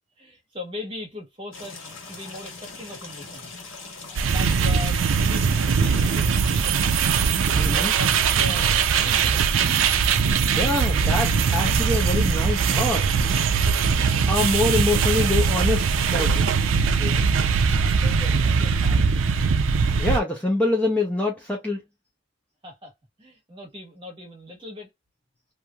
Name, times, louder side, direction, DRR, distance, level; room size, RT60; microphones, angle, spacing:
voice 1, 0.2-3.6 4.1-6.9 7.4-9.4 17.8-19.1 22.6-22.9 23.2-24.9, left 1 dB, 25° right, 1.5 m, -39 dB
sound 1, 1.5-7.7, left 3 dB, 80° left, 1.4 m, -41 dB
sound 2, 4.2-20.2, right 5 dB, 85° right, 0.4 m, -21 dB
voice 2, 7.6-7.9 10.5-13.3 14.3-16.5 17.0-17.3 20.0-21.8, left 2 dB, 5° left, 0.6 m, -25 dB
3.0 x 2.6 x 2.2 m
head